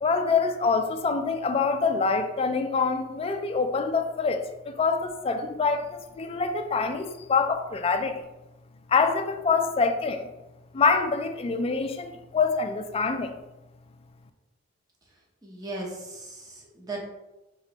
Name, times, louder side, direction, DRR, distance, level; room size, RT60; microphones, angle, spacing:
voice 1, 0.0-8.2 8.9-10.3 10.7-13.3, left 4 dB, 30° left, 6 dB, 0.3 m, -25 dB
voice 2, 15.4-17.1, right 2 dB, 20° right, -2 dB, 0.8 m, -37 dB
4.4 x 3.0 x 2.8 m, 0.99 s
head